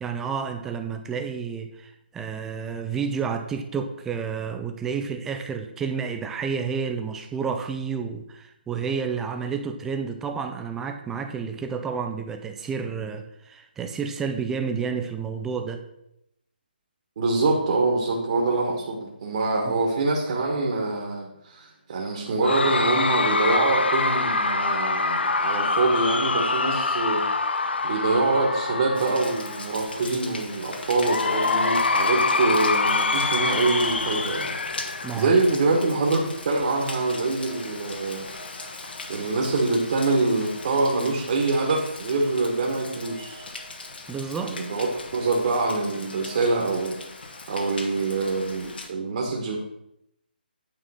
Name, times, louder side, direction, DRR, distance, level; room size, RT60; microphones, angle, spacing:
voice 1, 0.0-15.8 35.0-35.4 44.1-44.6, right 6 dB, 5° right, 5 dB, 0.4 m, -30 dB
voice 2, 17.2-27.3 27.8-34.6 35.2-38.3 39.1-43.4 44.4-44.9 45.1-47.0 47.5-49.6, right 3 dB, 40° right, 0 dB, 1.3 m, -25 dB
Cheering / Crowd, 22.4-29.7 31.0-35.7, left 3 dB, 80° left, 0.6 m, -25 dB
Rain, 28.9-48.9, left 3 dB, 65° left, 1.2 m, -39 dB
8.9 x 3.7 x 5.5 m, 0.82 s
hypercardioid pair, 165°, 6 cm